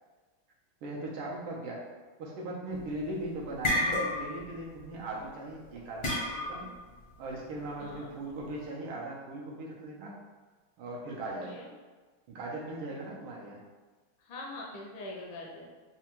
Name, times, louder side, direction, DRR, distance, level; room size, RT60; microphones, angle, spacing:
voice 1, 0.8-1.8 2.2-6.7 7.2-10.2 10.8-11.6 12.3-13.6, right 2 dB, 80° right, -3 dB, 1.6 m, -39 dB
sound 1, 2.8-3.1 3.4-4.5 4.7-5.0 6.0-6.7, left 1 dB, 55° left, 0.7 m, -30 dB
voice 2, 7.8-8.1 11.4-11.7 12.9-13.0 14.2-15.7, left 2 dB, 75° left, -2 dB, 1.3 m, -43 dB
4.6 x 2.2 x 2.9 m, 1.3 s
omnidirectional pair, 2.4 m